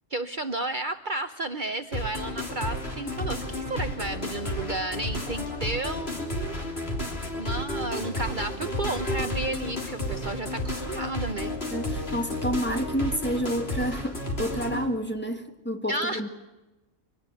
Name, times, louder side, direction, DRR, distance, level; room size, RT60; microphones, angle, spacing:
voice 1, 0.1-6.6 7.4-11.6 15.9-16.2, right 2 dB, 45° right, 9 dB, 1.0 m, -32 dB
sound 1, 1.9-14.8, left 1 dB, 55° left, 3.6 m, -32 dB
voice 2, 11.7-16.3, equal, 10° left, 4 dB, 1.8 m, -29 dB
24.5 x 18.5 x 9.2 m, 1.1 s
omnidirectional pair, 1.3 m